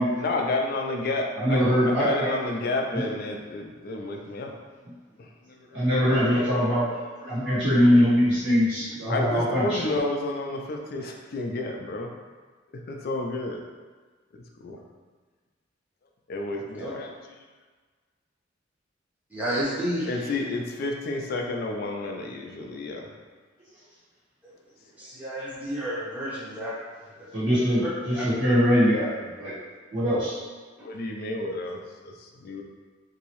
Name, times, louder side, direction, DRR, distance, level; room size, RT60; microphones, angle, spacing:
voice 1, 0.2-4.6 5.2-5.8 9.1-12.1 12.7-13.6 14.3-14.8 16.3-17.5 20.1-23.1 30.8-32.6, left 2 dB, 55° left, 2 dB, 0.4 m, -31 dB
voice 2, 1.4-2.3 2.9-3.0 5.7-9.9 27.3-27.8 28.2-29.5 29.9-30.3, equal, 75° right, -11 dB, 1.5 m, -22 dB
voice 3, 19.3-20.3 25.0-26.7 28.2-28.3, equal, 10° right, -10 dB, 0.8 m, -31 dB
2.9 x 2.7 x 3.0 m, 1.4 s
head